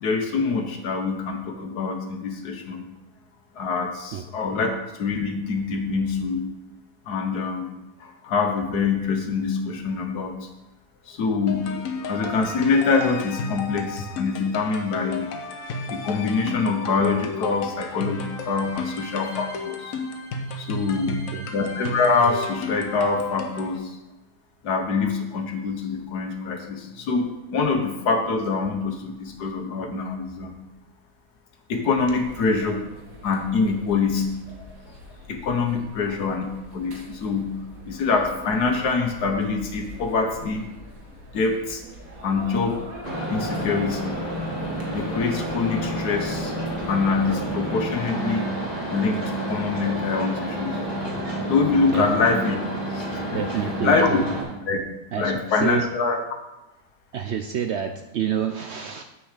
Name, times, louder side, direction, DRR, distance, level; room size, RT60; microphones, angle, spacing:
voice 1, 0.0-2.8 3.6-4.7 5.0-6.5 7.1-7.7 8.0-10.3 11.1-15.3 15.9-19.9 20.5-21.2 21.5-23.8 24.6-30.5 31.7-32.8 33.2-34.3 35.3-36.4 36.7-37.5 37.8-40.6 41.3-41.8 42.2-42.8 43.3-44.2 44.9-46.5 46.9-48.5 48.9-50.8 51.5-52.6 53.0-53.5 53.8-54.2 54.7-54.8 55.2-56.2, left 4 dB, 80° left, 4 dB, 1.6 m, -24 dB
sound 1, 11.5-23.8, left 3 dB, 60° left, 1.3 m, -33 dB
voice 2, 21.1-21.5 35.7-35.9 36.3-36.4 51.9-52.1 53.3-54.3 55.1-55.3 55.6-55.8 57.1-59.0, right 8 dB, 80° right, 6 dB, 0.6 m, -28 dB
sound 2, 31.9-47.4, equal, 60° right, 2.0 m, -43 dB
sound 3, 43.0-54.4, right 1 dB, 25° left, 2.4 m, -29 dB
7.7 x 6.5 x 5.0 m, 0.96 s
omnidirectional pair, 1.7 m